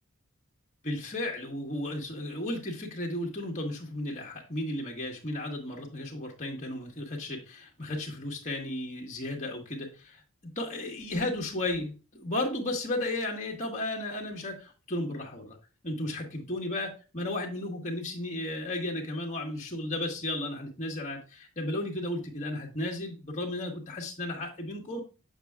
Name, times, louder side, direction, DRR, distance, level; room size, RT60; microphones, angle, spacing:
voice 1, 0.8-15.6 15.8-25.0, left 1 dB, 35° left, 0 dB, 1.6 m, -34 dB
7.2 x 6.9 x 2.4 m, 0.33 s
head